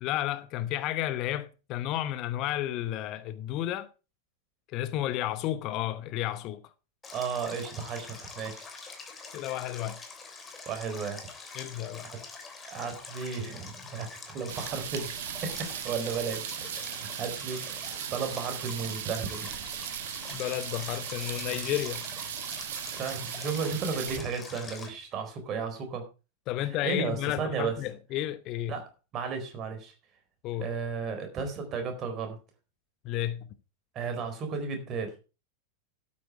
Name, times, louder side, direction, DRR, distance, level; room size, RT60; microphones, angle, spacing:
voice 1, 0.0-3.9 4.7-6.7 9.3-10.0 11.5-12.1 20.3-22.0 26.5-28.8 30.4-30.7 33.0-33.5, left 13 dB, 40° left, 0.9 m, -32 dB
Stream, 7.0-24.9, left 4 dB, 20° left, 3.2 m, -45 dB
voice 2, 7.1-8.7 10.7-11.3 12.7-15.1 15.4-16.6 17.2-19.5 22.9-26.0 26.8-27.7 28.7-28.8 29.1-29.9 30.6-32.4 33.9-35.1, right 5 dB, 30° right, 4.2 m, -34 dB
sound 1, 14.5-24.2, right 10 dB, 55° right, 1.2 m, -37 dB
12.5 x 8.6 x 4.8 m
figure-of-eight pair, 90°, 0 cm